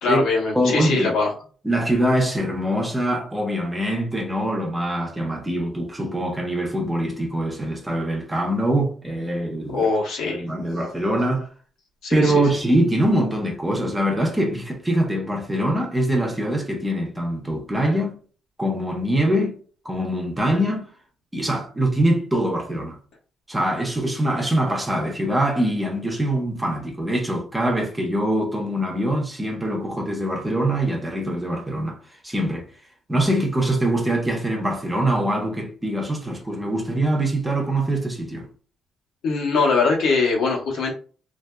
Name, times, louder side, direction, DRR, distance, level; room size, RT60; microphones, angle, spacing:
voice 1, 0.0-1.3 9.7-10.4 12.0-12.4 39.2-40.9, left 4 dB, 85° left, 1.1 m, -22 dB
voice 2, 0.5-1.1 1.6-9.9 10.2-11.5 12.1-18.2 18.6-19.6 19.8-20.9 21.3-23.0 23.5-32.0 32.2-32.7 33.1-38.5, right 1 dB, 15° right, 0.9 m, -23 dB
2.6 x 2.6 x 2.2 m
cardioid pair, 90°, 0 cm